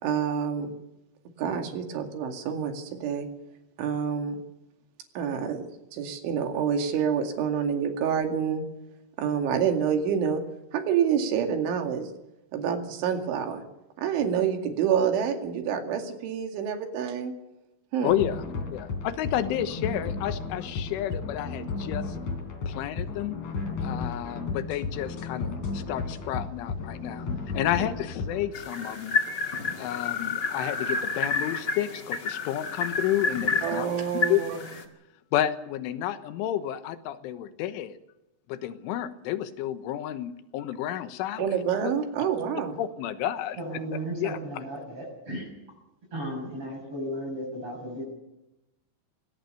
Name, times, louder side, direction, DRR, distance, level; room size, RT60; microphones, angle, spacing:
voice 1, 0.0-0.7 1.4-3.3 3.8-4.4 5.2-5.7 5.9-8.7 9.2-10.4 10.7-12.1 12.5-13.6 14.0-17.3 17.9-18.1 33.6-34.6 41.4-42.7, right 7 dB, 75° right, 5 dB, 4.6 m, -27 dB
voice 2, 18.0-18.4 18.7-22.2 22.7-23.4 23.8-27.3 27.5-29.2 29.6-33.9 34.1-34.4 35.3-38.0 38.5-41.6 41.8-41.9 42.8-43.6 44.2-44.4, left 12 dB, 80° left, 11 dB, 3.6 m, -31 dB
sound 1, 18.1-28.4, left 4 dB, 40° left, 4.3 m, -34 dB
sound 2, 28.5-34.8, left 4 dB, 60° left, 1.1 m, -30 dB
voice 3, 43.6-45.5 46.1-48.0, right 1 dB, 25° right, -1 dB, 7.8 m, -35 dB
22.5 x 18.5 x 6.8 m, 0.92 s
omnidirectional pair, 5.7 m